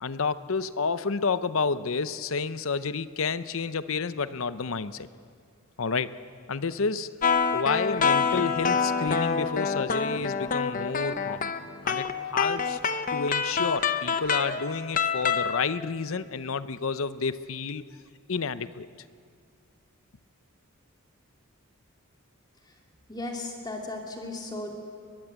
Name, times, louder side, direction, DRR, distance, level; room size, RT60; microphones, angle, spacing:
voice 1, 0.0-5.1 5.8-6.1 6.5-7.1 7.5-11.5 11.8-12.8 13.1-17.9 18.3-18.9, left 5 dB, 65° left, 14 dB, 0.7 m, -30 dB
sound 1, 7.2-15.6, left 5 dB, 40° left, 0.8 m, -26 dB
voice 2, 23.1-24.7, left 2 dB, 20° left, 1 dB, 2.4 m, -35 dB
22.0 x 21.5 x 8.2 m, 2.2 s
head